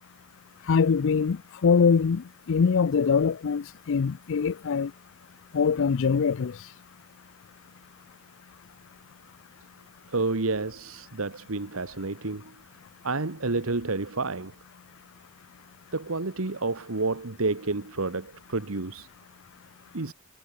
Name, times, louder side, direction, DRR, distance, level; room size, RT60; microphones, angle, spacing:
voice 1, 0.7-4.9 5.5-6.6, left 6 dB, 65° left, 0.4 m, -23 dB
voice 2, 10.1-12.5 13.0-14.5 15.9-19.1 19.9-20.1, right 3 dB, 70° right, 1.4 m, -30 dB
head